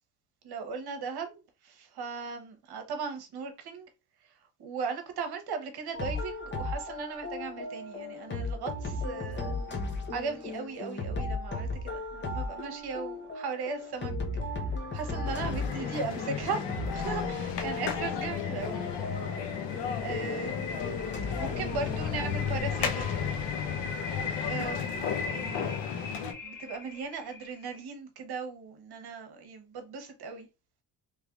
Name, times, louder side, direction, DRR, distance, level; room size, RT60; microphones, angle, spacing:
voice 1, 0.4-3.9 4.2-4.3 4.6-9.5 10.1-14.1 14.9-18.9 19.9-20.8 21.3-23.2 24.3-25.8 26.4-30.5, right 5 dB, 60° right, 1.0 m, -38 dB
sound 1, 5.9-22.6, left 2 dB, 25° left, 0.7 m, -36 dB
sound 2, 14.5-27.8, left 4 dB, 45° left, 1.3 m, -42 dB
sound 3, 15.2-26.3, left 7 dB, 70° left, 0.8 m, -34 dB
3.3 x 3.2 x 2.4 m
cardioid pair, 130°, 43 cm